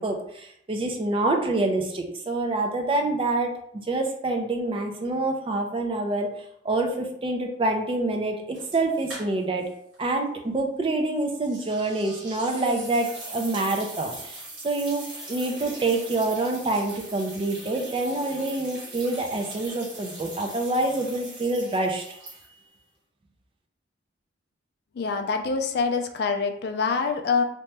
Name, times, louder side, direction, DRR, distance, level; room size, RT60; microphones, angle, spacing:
voice 1, 0.0-3.5 3.9-6.3 6.6-9.7 10.0-22.0, right 2 dB, 30° right, 3 dB, 0.4 m, -26 dB
sound 1, 8.5-9.7 9.9-10.0 11.4-22.7, right 2 dB, 65° right, 1.4 m, -41 dB
voice 2, 25.0-27.4, left 5 dB, 55° left, 5 dB, 0.3 m, -25 dB
2.8 x 2.2 x 3.2 m, 0.71 s
head